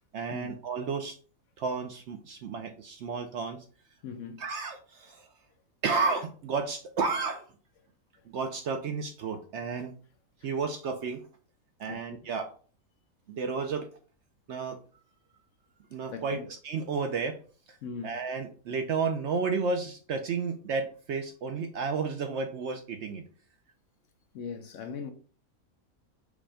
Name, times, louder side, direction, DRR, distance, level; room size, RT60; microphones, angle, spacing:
voice 1, 0.1-1.2 1.6-3.7 4.4-5.3 5.8-7.4 8.2-9.9 10.4-11.2 11.8-12.5 13.3-13.9 14.5-14.8 15.9-17.4 17.7-17.8 18.0-23.2, right 4 dB, 65° right, 0.7 m, -32 dB
voice 2, 4.0-4.4 11.9-12.2 16.1-16.5 17.8-18.1 24.3-25.1, left 6 dB, 65° left, 0.9 m, -39 dB
5.1 x 2.2 x 4.8 m
omnidirectional pair, 1.5 m